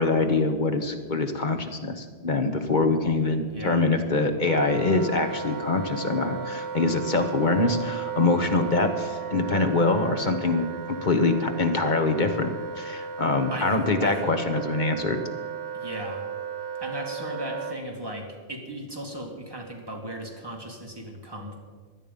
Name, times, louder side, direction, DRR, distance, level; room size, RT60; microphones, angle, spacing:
voice 1, 0.0-10.6 11.0-15.2, left 3 dB, 45° left, 6 dB, 1.3 m, -24 dB
voice 2, 3.5-3.9 13.5-13.8 14.0-14.2 15.7-16.2 16.8-21.6, equal, 20° right, 0 dB, 2.3 m, -36 dB
Wind instrument woodwind instrument, 4.5-17.8, right 7 dB, 65° right, 1.1 m, -35 dB
17.0 x 11.0 x 5.3 m, 1.5 s
omnidirectional pair, 1.2 m